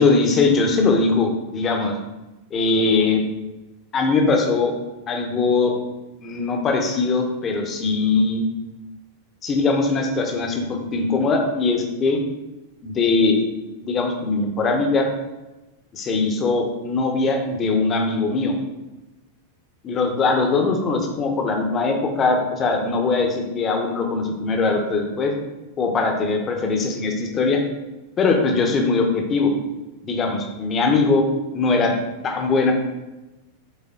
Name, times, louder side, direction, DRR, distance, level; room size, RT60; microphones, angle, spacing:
voice 1, 0.0-1.9 2.5-3.2 3.9-4.7 5.1-5.7 6.2-8.5 9.4-12.2 12.8-13.4 13.8-15.1 15.9-18.6 19.8-25.3 25.8-27.6 28.2-29.5 30.0-31.2 31.5-32.0 32.2-32.7, left 3 dB, 25° left, 3 dB, 1.1 m, -21 dB
7.7 x 3.9 x 3.9 m, 1.0 s
figure-of-eight pair, 90°, 0 cm